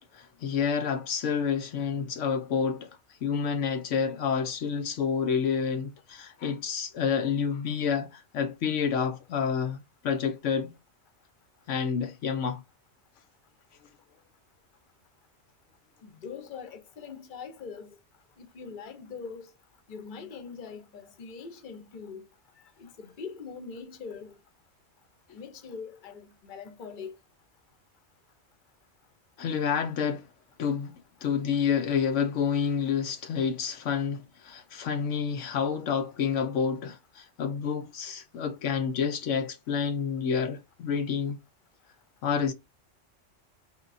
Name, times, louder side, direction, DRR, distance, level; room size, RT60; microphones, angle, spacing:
voice 1, 0.1-2.9 3.2-10.7 11.7-12.6 29.4-30.3 30.6-30.9 31.2-41.4 42.2-42.5, left 6 dB, 80° left, 1.0 m, -29 dB
voice 2, 16.0-18.0 18.4-19.5 19.9-22.3 22.6-24.4 25.3-27.2, left 5 dB, 45° left, 1.0 m, -42 dB
4.4 x 3.3 x 2.5 m
omnidirectional pair, 1.3 m